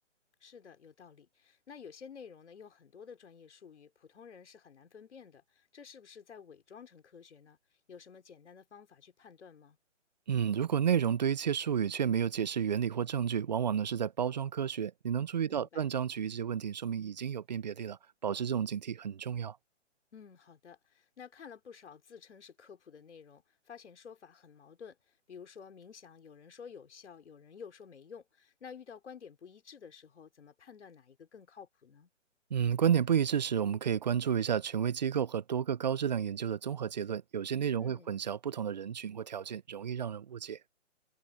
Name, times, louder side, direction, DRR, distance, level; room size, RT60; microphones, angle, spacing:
voice 1, 0.4-7.6 7.9-9.8 15.5-15.9 20.1-25.0 25.3-32.1 37.8-38.1, left 6 dB, 60° left, 4.8 m, -52 dB
voice 2, 10.3-19.6 32.5-40.6, right 8 dB, 35° right, 0.5 m, -31 dB
hypercardioid pair, 155°, 38 cm